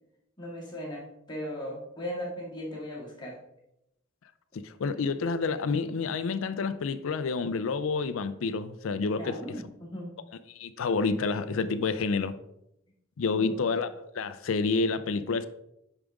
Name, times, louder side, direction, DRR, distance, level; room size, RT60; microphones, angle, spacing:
voice 1, 0.4-3.4 9.2-10.1 13.3-13.8, equal, 20° left, 2.1 m, -38 dB
voice 2, 4.6-9.4 10.5-12.4 13.2-15.5, left 4 dB, 75° left, 0.4 m, -29 dB
8.7 x 5.0 x 3.5 m
head